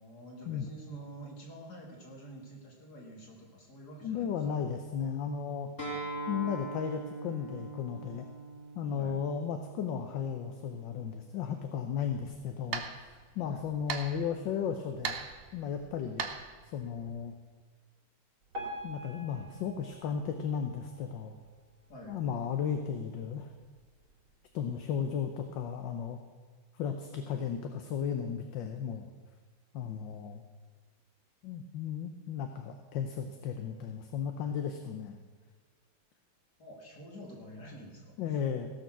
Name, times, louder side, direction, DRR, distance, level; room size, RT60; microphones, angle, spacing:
voice 1, 0.0-4.3 8.9-9.2 13.4-13.6 21.9-22.2 36.6-38.2, right 1 dB, 50° left, 0 dB, 2.9 m, -48 dB
voice 2, 4.0-5.7 6.3-8.3 8.7-15.2 15.5-16.2 16.7-17.3 18.8-21.3 22.1-23.5 24.5-26.2 26.7-29.1 29.7-30.4 31.4-35.2 38.2-38.7, left 7 dB, 70° left, 6 dB, 1.5 m, -35 dB
Acoustic guitar, 5.8-11.0, right 2 dB, 25° left, 2.9 m, -42 dB
sound 1, 12.0-17.3, right 5 dB, 55° right, 0.6 m, -41 dB
Piano, 18.5-21.6 22.2-22.3 22.6-22.7 23.4-23.5 24.1-24.2, equal, 90° right, 3.3 m, -45 dB
16.5 x 6.6 x 6.1 m, 1.5 s
omnidirectional pair, 2.2 m